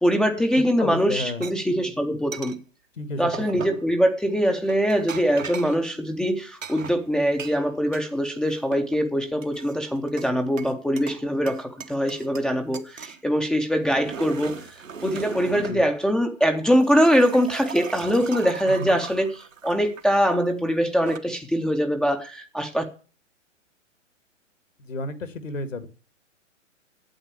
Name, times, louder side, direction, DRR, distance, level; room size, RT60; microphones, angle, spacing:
voice 1, 0.0-2.6 3.2-14.6 15.0-19.3 19.6-22.8, equal, ahead, 3 dB, 0.5 m, -23 dB
voice 2, 0.6-1.5 2.9-3.7 15.4-15.8 18.6-19.0 24.8-25.9, left 2 dB, 75° left, 11 dB, 2.3 m, -32 dB
sound 1, 1.4-1.5 2.3-2.6 3.3-3.8 4.7-5.8 6.6-8.1 8.4-9.0 9.4-10.3 10.6-11.2 11.5-12.5 12.7-13.2 13.7-15.8 16.6-20.0 20.8-21.2, right 6 dB, 85° right, 1.3 m, -38 dB
9.1 x 8.0 x 8.4 m, 0.38 s
figure-of-eight pair, 120°, 38 cm